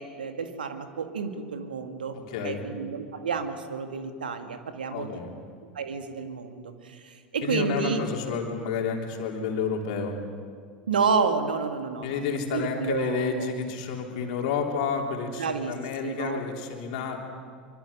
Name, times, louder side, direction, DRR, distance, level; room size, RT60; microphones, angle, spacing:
voice 1, 0.0-2.2 2.4-5.1 5.7-8.0 10.8-12.2 12.5-13.5 15.4-15.7 16.0-16.4, right 5 dB, 75° right, 7 dB, 1.9 m, -30 dB
voice 2, 2.3-2.6 4.9-5.3 7.4-10.2 12.0-17.2, left 5 dB, 55° left, 1 dB, 3.5 m, -30 dB
25.0 x 24.0 x 5.6 m, 2.1 s
figure-of-eight pair, 80°, 5 cm